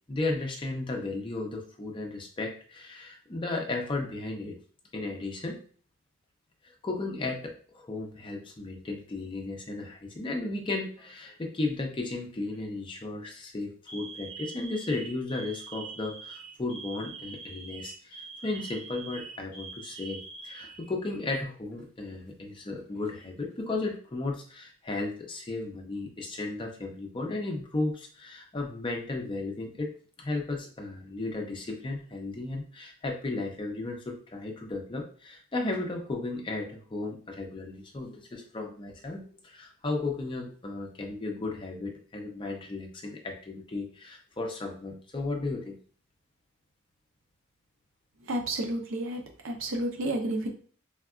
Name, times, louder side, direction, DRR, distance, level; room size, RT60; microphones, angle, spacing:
voice 1, 0.1-4.5 4.9-5.6 6.8-29.9 30.2-45.8, left 2 dB, 25° left, 2 dB, 0.4 m, -34 dB
Alarm, 11.0-11.5 12.3-12.6 13.1-13.3 13.9-21.4 21.7-21.8 22.7-23.4, right 5 dB, 5° left, 1.1 m, -44 dB
voice 2, 48.2-50.5, right 1 dB, 65° right, 2 dB, 0.5 m, -31 dB
3.5 x 2.2 x 2.3 m, 0.44 s
head